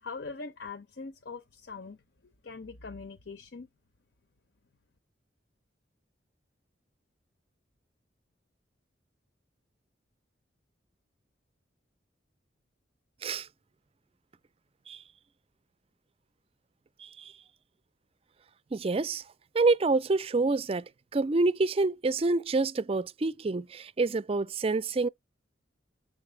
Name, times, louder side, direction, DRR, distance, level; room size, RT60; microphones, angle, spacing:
voice 1, 0.0-2.0 2.2-3.7, left 4 dB, 70° left, 0.7 m, -42 dB
voice 2, 18.7-19.2 19.5-20.8 21.1-25.1, right 3 dB, 30° right, 0.4 m, -27 dB
7.7 x 4.8 x 3.2 m
head